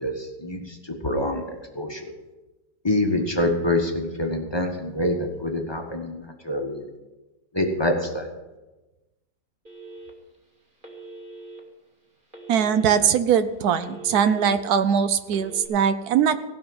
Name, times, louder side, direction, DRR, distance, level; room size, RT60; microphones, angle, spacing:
voice 1, 0.0-2.1 2.8-6.8 7.5-8.3, left 1 dB, 15° left, 3 dB, 1.1 m, -26 dB
Telephone, 9.7-10.4 10.8-11.6 12.3-13.1 13.5-14.6 15.2-15.7, right 2 dB, 30° right, 2.1 m, -42 dB
voice 2, 12.5-16.4, right 8 dB, 65° right, 12 dB, 1.1 m, -21 dB
16.5 x 5.8 x 7.8 m, 1.1 s
omnidirectional pair, 1.9 m